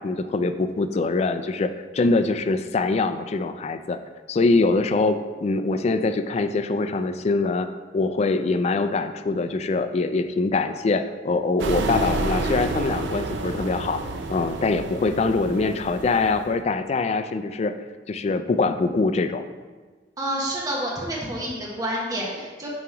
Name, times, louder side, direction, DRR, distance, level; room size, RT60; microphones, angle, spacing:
voice 1, 0.0-4.0 4.3-7.7 7.9-14.0 14.3-17.7 18.1-19.4, left 3 dB, 35° left, 9 dB, 0.3 m, -23 dB
sound 1, 11.6-16.6, right 3 dB, 90° right, 0.5 m, -30 dB
sound 2, 11.8-15.0, left 2 dB, 65° right, 1.3 m, -36 dB
voice 2, 20.2-22.7, right 1 dB, 20° right, -4 dB, 1.0 m, -28 dB
7.0 x 3.0 x 4.7 m, 1.4 s
head